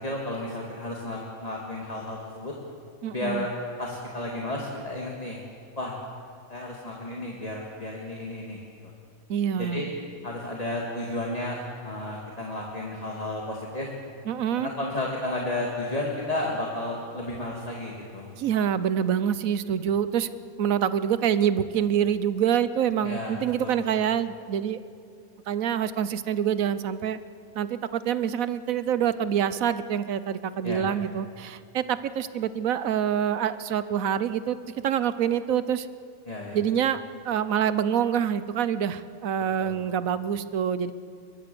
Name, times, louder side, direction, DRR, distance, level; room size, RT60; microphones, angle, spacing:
voice 1, 0.0-2.5 3.1-5.4 5.8-6.0 6.5-8.9 9.6-9.9 10.2-13.9 14.6-18.3 23.0-23.8 30.6-30.8 36.3-36.6 39.6-39.8, left 1 dB, 25° left, -2 dB, 2.2 m, -33 dB
voice 2, 3.0-3.5 9.3-9.9 14.3-14.7 18.4-20.3 20.6-24.8 25.5-27.2 27.5-34.6 34.8-35.9 36.5-40.9, right 9 dB, 75° right, 14 dB, 1.2 m, -26 dB
22.5 x 22.0 x 6.9 m, 2.3 s
omnidirectional pair, 1.4 m